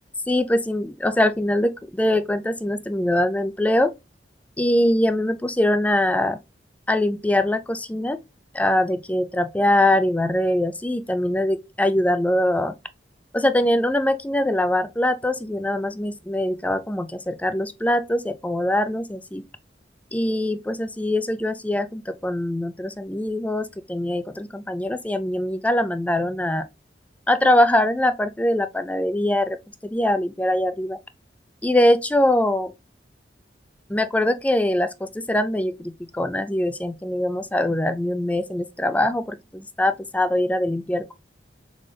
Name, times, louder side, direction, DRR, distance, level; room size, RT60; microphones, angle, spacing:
voice 1, 0.3-3.9 4.6-6.4 6.9-8.2 8.5-12.7 13.3-19.4 20.1-26.6 27.3-29.6 29.8-31.0 31.6-32.7 33.9-41.1, left 1 dB, 10° left, 0.3 m, -22 dB
3.8 x 3.7 x 3.3 m
head